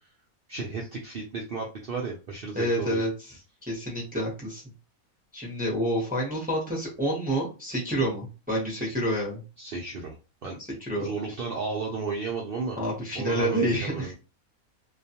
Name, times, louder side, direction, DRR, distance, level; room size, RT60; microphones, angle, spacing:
voice 1, 0.5-3.0 9.6-10.2 10.4-10.6 11.0-12.8 13.2-14.1, right 4 dB, 80° right, -1 dB, 0.5 m, -33 dB
voice 2, 2.5-3.1 3.7-4.6 5.3-9.4 10.8-11.1 12.8-14.1, right 1 dB, 10° right, -3 dB, 0.5 m, -28 dB
2.4 x 2.2 x 2.8 m, 0.32 s
omnidirectional pair, 1.5 m